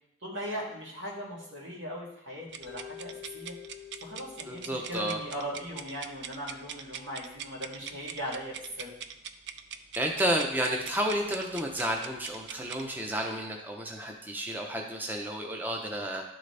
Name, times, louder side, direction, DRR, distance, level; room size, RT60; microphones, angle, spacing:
voice 1, 0.2-3.5 4.0-8.9, equal, 85° right, -4 dB, 2.3 m, -39 dB
sound 1, 2.5-12.9, right 8 dB, 65° right, 0.4 m, -43 dB
Mallet percussion, 2.7-6.8, left 10 dB, 80° left, 0.7 m, -49 dB
voice 2, 4.5-5.2 10.0-16.2, right 1 dB, 10° right, 1 dB, 0.6 m, -31 dB
11.5 x 3.9 x 3.3 m, 0.82 s
head